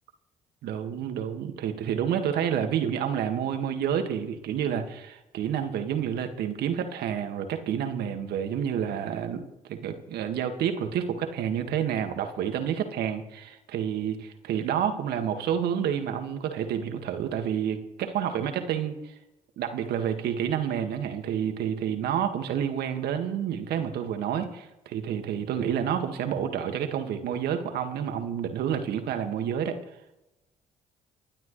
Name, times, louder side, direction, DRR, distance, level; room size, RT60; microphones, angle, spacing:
voice 1, 0.6-9.4 9.7-19.2 19.6-29.8, right 8 dB, 70° right, 6 dB, 2.0 m, -29 dB
29.5 x 11.5 x 3.3 m, 0.96 s
hypercardioid pair, 50°, 17 cm